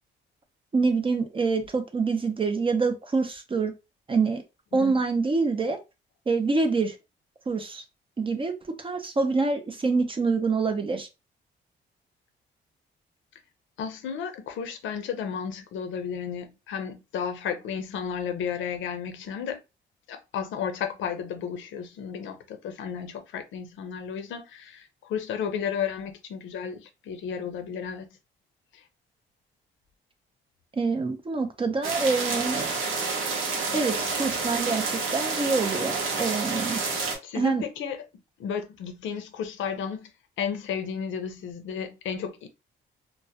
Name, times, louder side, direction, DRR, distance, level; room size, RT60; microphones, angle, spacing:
voice 1, 0.7-3.7 4.1-4.4 4.7-5.8 6.3-7.0 7.5-7.8 8.2-11.1 30.8-32.7 33.7-36.8 37.3-37.6, right 4 dB, 25° right, 0.5 m, -26 dB
voice 2, 13.8-19.6 20.1-28.1 28.7-28.8 37.2-38.0 38.4-40.1 40.4-42.5, left 7 dB, 75° left, 0.5 m, -33 dB
sound 1, 31.8-37.2, right 4 dB, 90° right, 0.8 m, -29 dB
2.2 x 2.1 x 2.6 m
cardioid pair, 90°, 20 cm